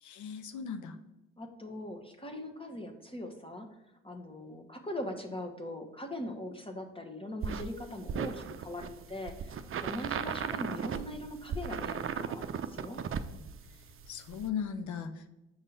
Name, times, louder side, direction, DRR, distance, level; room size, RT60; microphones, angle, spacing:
voice 1, 0.0-1.0 14.1-15.3, left 7 dB, 60° left, 10 dB, 0.8 m, -37 dB
voice 2, 1.4-3.7 4.0-13.0, left 1 dB, 15° left, 4 dB, 1.4 m, -41 dB
sound 1, 7.4-14.5, right 7 dB, 40° right, 0.6 m, -37 dB
7.2 x 5.4 x 4.0 m, 1.0 s
hypercardioid pair, 50°, 33 cm